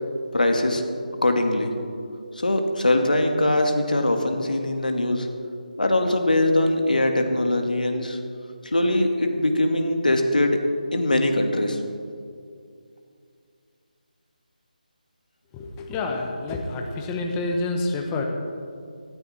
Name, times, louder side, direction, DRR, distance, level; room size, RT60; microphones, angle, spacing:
voice 1, 0.3-0.8 1.2-1.7 2.4-5.3 5.8-8.2 8.6-10.6 10.9-11.8, left 1 dB, 65° left, 4 dB, 2.0 m, -22 dB
voice 2, 15.5-18.3, left 2 dB, 15° left, 2 dB, 1.2 m, -28 dB
19.5 x 12.5 x 4.4 m, 2.4 s
figure-of-eight pair, 155°, 5 cm